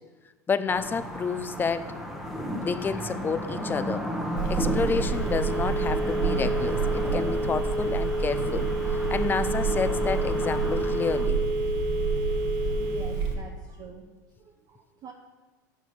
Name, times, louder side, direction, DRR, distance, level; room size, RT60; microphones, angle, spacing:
voice 1, 0.5-1.9 2.6-4.1 4.5-8.7 9.1-11.4, left 5 dB, 20° left, 13 dB, 0.4 m, -29 dB
sound 1, 0.7-11.3, equal, 5° right, 1.0 m, -34 dB
Telephone, 4.4-13.3, right 3 dB, 65° right, 1.2 m, -27 dB
voice 2, 12.7-14.0 14.4-15.1, right 6 dB, 40° right, 2 dB, 0.7 m, -45 dB
6.6 x 4.7 x 5.9 m, 1.3 s
hypercardioid pair, 90°, 10 cm